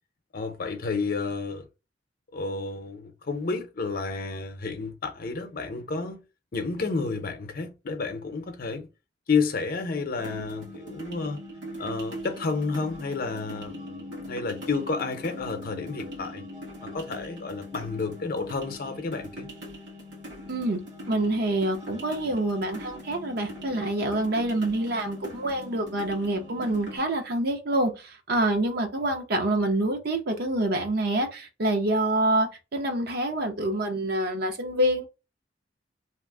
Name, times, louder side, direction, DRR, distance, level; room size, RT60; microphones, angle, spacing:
voice 1, 0.3-1.7 2.3-6.2 6.5-8.9 9.3-11.4 11.8-16.4 16.8-19.5, left 4 dB, 55° left, 0.6 m, -31 dB
sound 1, 10.2-27.0, equal, 75° right, 1.3 m, -41 dB
voice 2, 20.5-20.8 21.1-35.1, right 1 dB, 60° right, 0.7 m, -26 dB
2.9 x 2.0 x 3.5 m
head